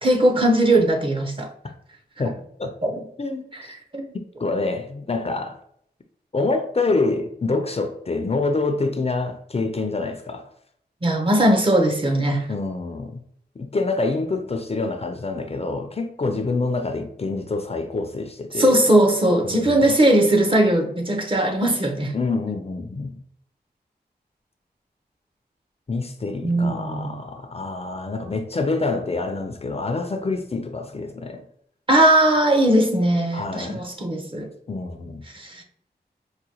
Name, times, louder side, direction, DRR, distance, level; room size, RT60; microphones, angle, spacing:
voice 1, 0.0-1.5 2.8-3.0 3.9-4.1 11.0-12.5 18.6-22.1 26.4-27.2 31.9-34.5 35.3-35.6, right 1 dB, 30° right, 0.7 m, -19 dB
voice 2, 2.2-2.7 3.2-3.7 4.4-5.6 6.3-10.5 12.5-13.2 13.6-18.8 19.4-19.8 22.1-23.2 25.9-31.5 33.3-33.8 34.7-35.2, left 3 dB, 35° left, 0.4 m, -26 dB
4.8 x 2.2 x 2.8 m
wide cardioid pair, 80°, 17 cm